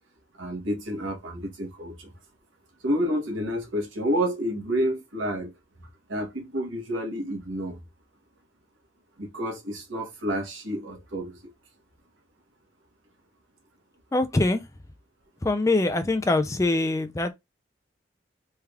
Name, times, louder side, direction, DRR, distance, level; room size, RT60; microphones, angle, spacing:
voice 1, 0.4-2.1 2.8-5.5 5.8-7.8 9.2-11.5, equal, 85° right, 1.2 m, -29 dB
voice 2, 14.1-14.6 15.4-17.3, left 2 dB, 15° left, 0.3 m, -23 dB
3.4 x 2.4 x 3.3 m
head